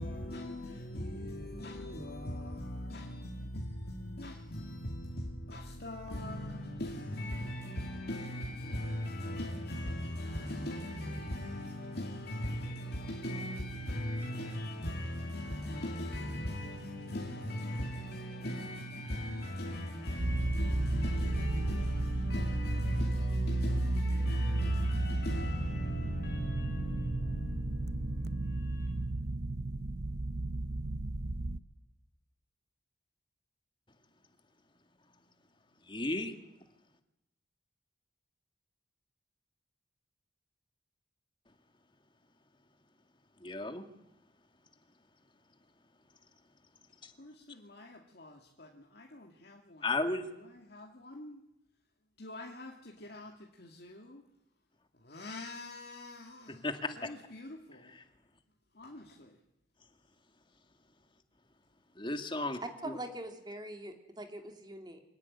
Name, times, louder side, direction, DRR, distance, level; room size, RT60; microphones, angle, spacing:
voice 1, 0.0-29.3 47.2-49.9 50.3-51.4 52.2-54.2 54.9-56.7 57.0-58.0 58.7-59.4, left 1 dB, 55° left, 2.4 m, -40 dB
sound 1, 20.2-31.6, right 2 dB, 55° right, 0.9 m, -33 dB
voice 2, 35.9-36.3 43.4-43.9 47.0-47.1 49.8-50.2 56.6-57.0 62.0-62.6 62.8-63.0, left 2 dB, 25° left, 2.2 m, -33 dB
voice 3, 62.6-65.0, right 1 dB, 25° right, 2.7 m, -43 dB
26.0 x 17.5 x 9.9 m
head